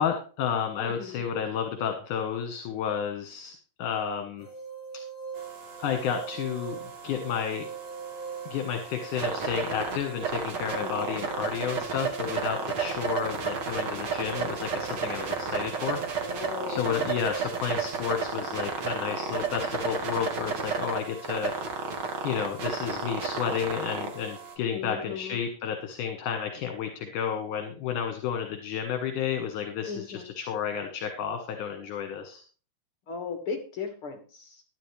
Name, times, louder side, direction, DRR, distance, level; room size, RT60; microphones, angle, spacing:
voice 1, 0.0-4.5 5.8-6.8 7.0-7.7 8.5-16.0 16.3-21.5 22.2-32.4, left 8 dB, 70° left, 5 dB, 2.7 m, -31 dB
voice 2, 0.8-1.2 10.8-11.2 16.2-17.1 24.7-25.4 29.8-30.3 33.1-34.6, left 5 dB, 45° left, 4 dB, 2.1 m, -37 dB
sound 1, 4.4-17.4, right 6 dB, 25° right, 5.2 m, -42 dB
sound 2, 5.3-24.5, right 5 dB, 45° right, 1.5 m, -33 dB
13.0 x 10.5 x 3.3 m, 0.38 s
omnidirectional pair, 4.1 m